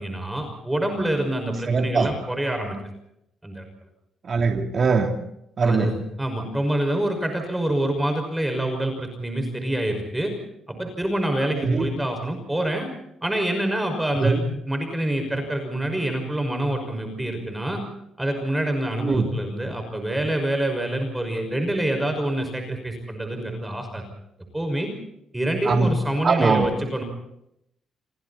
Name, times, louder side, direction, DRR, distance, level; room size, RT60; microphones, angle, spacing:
voice 1, 0.0-2.8 3.4-3.6 5.6-10.3 10.7-12.9 13.2-14.4 14.6-17.8 18.2-24.0 24.5-24.9 25.3-27.0, right 1 dB, 10° right, 5 dB, 5.8 m, -26 dB
voice 2, 1.7-2.1 4.2-5.1 5.6-5.9 11.5-11.9 14.2-14.4 19.0-19.3 25.6-25.9 26.2-26.7, right 4 dB, 45° right, 3 dB, 3.1 m, -21 dB
29.5 x 24.0 x 4.3 m, 0.77 s
cardioid pair, 90°, 0 cm